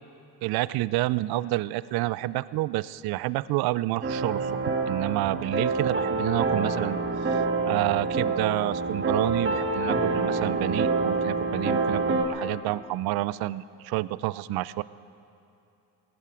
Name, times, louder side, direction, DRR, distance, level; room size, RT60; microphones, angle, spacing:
voice 1, 0.4-4.5 4.9-14.8, right 17 dB, 50° right, 19 dB, 0.6 m, -29 dB
sound 1, 4.0-12.2, right 3 dB, 25° right, 2.5 m, -27 dB
18.0 x 16.5 x 5.0 m, 2.8 s
hypercardioid pair, 70°, 49 cm